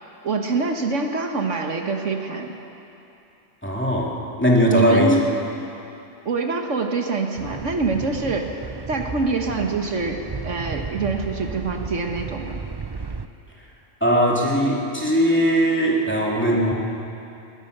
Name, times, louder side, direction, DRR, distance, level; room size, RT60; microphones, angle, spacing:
voice 1, 0.2-2.5 4.7-5.2 6.3-8.5 8.9-12.6, right 4 dB, 70° right, 3 dB, 1.7 m, -25 dB
voice 2, 3.6-5.2 14.0-16.7, equal, 10° left, -3 dB, 2.9 m, -19 dB
sound 1, 7.3-13.3, right 4 dB, 35° right, 0.4 m, -34 dB
21.0 x 19.5 x 6.8 m, 2.8 s
omnidirectional pair, 1.3 m